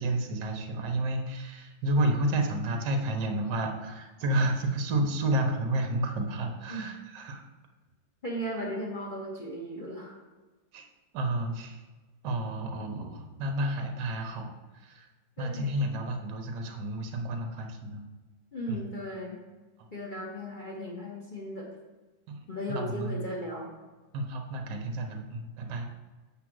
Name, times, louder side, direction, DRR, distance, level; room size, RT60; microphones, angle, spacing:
voice 1, 0.0-7.4 10.7-10.9 11.1-11.8 12.2-14.5 14.8-15.1 15.4-18.0 18.7-18.8 19.8-19.9 22.3-22.4 22.7-23.2 24.1-25.9, right 1 dB, 65° right, 4 dB, 1.5 m, -30 dB
voice 2, 8.2-10.2 15.4-15.8 18.5-19.4 19.9-21.7 22.5-23.7, equal, 30° left, -4 dB, 1.1 m, -36 dB
7.2 x 3.8 x 6.1 m, 1.3 s
omnidirectional pair, 2.1 m